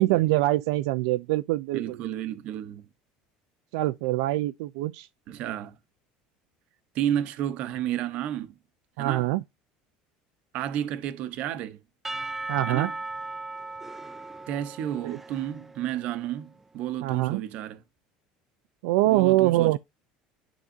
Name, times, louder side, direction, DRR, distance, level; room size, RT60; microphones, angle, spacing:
voice 1, 0.0-2.0 3.7-5.1 9.0-9.4 12.5-12.9 15.0-15.2 17.0-17.4 18.8-19.8, right 17 dB, 90° right, 0.6 m, -24 dB
voice 2, 1.7-2.9 5.3-5.8 6.9-8.5 9.0-9.3 10.5-11.8 12.7-13.0 14.5-17.8 19.0-19.8, right 11 dB, 50° right, 0.9 m, -31 dB
Percussion / Church bell, 12.0-16.2, right 2 dB, 10° right, 0.4 m, -37 dB
10.0 x 3.7 x 2.7 m
cardioid pair, 165°, 3 cm